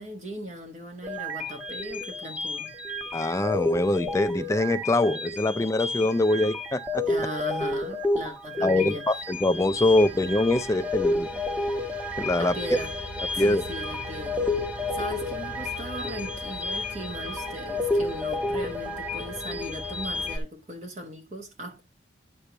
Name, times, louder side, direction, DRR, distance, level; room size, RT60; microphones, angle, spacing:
voice 1, 0.0-2.7 7.1-9.0 11.3-11.4 12.4-12.9 13.3-14.4 14.9-21.8, equal, 40° right, 1.2 m, -38 dB
sound 1, 1.0-20.4, left 2 dB, 5° right, 1.1 m, -31 dB
voice 2, 3.1-7.0 8.6-11.3 12.2-12.6 13.4-13.6, left 2 dB, 15° left, 0.4 m, -24 dB
10.0 x 6.7 x 3.0 m
head